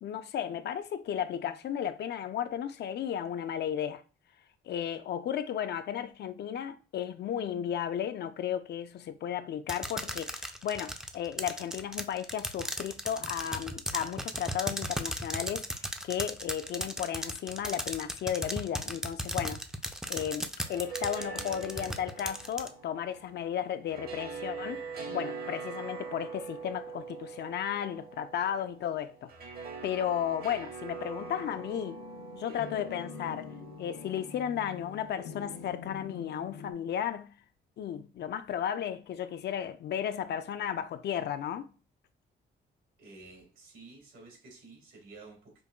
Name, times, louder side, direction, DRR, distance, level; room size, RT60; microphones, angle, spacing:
voice 1, 0.0-4.0 4.7-19.6 20.1-24.8 25.1-29.3 29.8-32.0 32.3-33.5 33.8-37.3 37.8-41.7, left 9 dB, 60° left, 0.4 m, -34 dB
sound 1, 9.7-22.7, equal, 5° right, 0.4 m, -35 dB
sound 2, 20.4-35.6, right 5 dB, 50° right, 0.8 m, -43 dB
sound 3, 31.2-36.7, left 5 dB, 90° left, 0.8 m, -46 dB
voice 2, 43.0-45.6, right 3 dB, 80° right, 1.9 m, -51 dB
5.2 x 2.2 x 2.2 m
cardioid pair, 90°, 20 cm